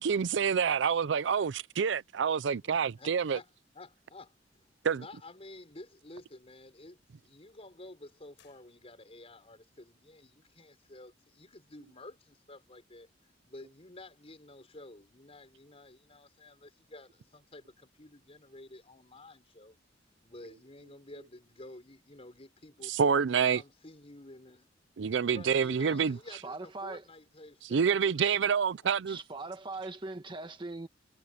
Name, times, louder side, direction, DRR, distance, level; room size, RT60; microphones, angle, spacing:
voice 1, 0.0-3.4 4.8-5.0 22.8-23.6 25.0-26.2 27.7-29.2, right 6 dB, 70° right, 0.5 m, -27 dB
voice 2, 2.6-3.5 3.7-4.6 4.9-13.1 13.4-19.8 20.2-22.9 23.5-24.7 25.3-28.4, left 2 dB, 35° left, 4.8 m, -51 dB
sound 1, 8.4-9.4, left 9 dB, 70° left, 7.2 m, -68 dB
voice 3, 26.3-27.0 28.2-28.3 29.0-30.9, right 3 dB, 25° right, 1.5 m, -40 dB
head